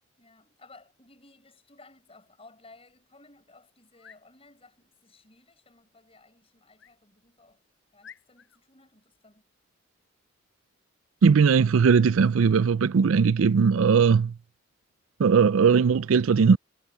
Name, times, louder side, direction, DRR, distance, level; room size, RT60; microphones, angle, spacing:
voice 1, 0.2-7.6 7.9-9.5, left 3 dB, 30° left, 6.0 m, -56 dB
sound 1, 3.8-4.2 6.8-7.0 7.5-7.6 8.0-8.6 11.4-11.7 12.1-12.3, left 7 dB, 65° left, 6.6 m, -53 dB
voice 2, 11.2-14.3 15.2-16.6, right 6 dB, 90° right, 0.4 m, -19 dB
head